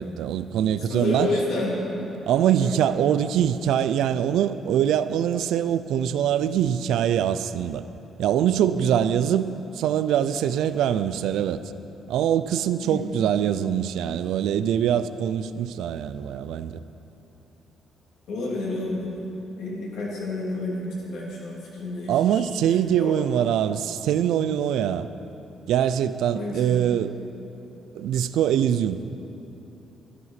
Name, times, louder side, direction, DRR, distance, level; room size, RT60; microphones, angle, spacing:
voice 1, 0.0-1.4 2.3-7.8 8.2-9.5 9.7-11.6 12.1-16.8 22.1-25.1 25.7-27.1 27.9-29.0, right 10 dB, 85° right, 12 dB, 0.5 m, -23 dB
voice 2, 0.9-1.8 2.6-2.8 8.8-8.9 12.8-13.1 18.3-19.1 19.6-22.4 23.0-23.2 26.3-26.8, left 2 dB, 85° left, -5 dB, 3.4 m, -30 dB
12.5 x 11.0 x 5.9 m, 2.9 s
cardioid pair, 90°, 0 cm